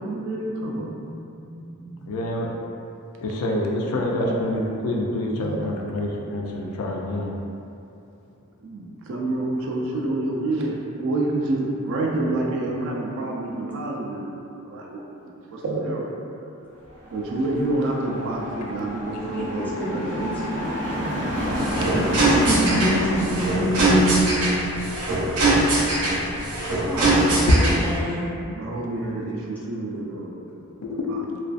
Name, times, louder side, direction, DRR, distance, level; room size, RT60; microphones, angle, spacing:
voice 1, 0.0-2.1 2.4-2.5 5.4-5.6 8.6-14.3 14.6-15.0 15.5-16.1 17.1-20.4 21.2-21.9 28.5-30.5 31.1-31.2, right 2 dB, 60° right, -1 dB, 0.3 m, -28 dB
voice 2, 2.1-2.5 3.2-7.3 20.9-21.0 26.0-26.3 27.3-27.6 30.8-31.2, left 1 dB, 70° left, -1 dB, 0.3 m, -26 dB
sound 1, 16.9-24.3, equal, 30° right, 0.7 m, -30 dB
voice 3, 19.3-21.4 21.9-24.5 26.9-28.2, equal, 5° left, -8 dB, 0.4 m, -26 dB
sound 2, 21.4-28.0, right 2 dB, 90° right, 0.8 m, -22 dB
2.4 x 2.3 x 2.4 m, 2.7 s
head